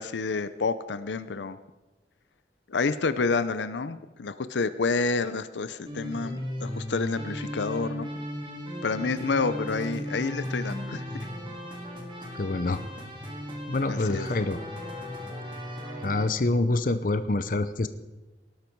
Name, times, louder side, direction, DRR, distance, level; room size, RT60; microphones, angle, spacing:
voice 1, 0.0-1.6 2.7-8.1 8.8-11.0 13.9-14.3, left 4 dB, 85° left, 13 dB, 0.6 m, -29 dB
sound 1, 5.9-16.3, equal, 25° right, 2.2 m, -36 dB
voice 2, 12.3-12.8 13.7-14.6 16.0-17.9, left 2 dB, 50° left, 11 dB, 0.7 m, -26 dB
18.0 x 12.0 x 4.6 m, 1.1 s
head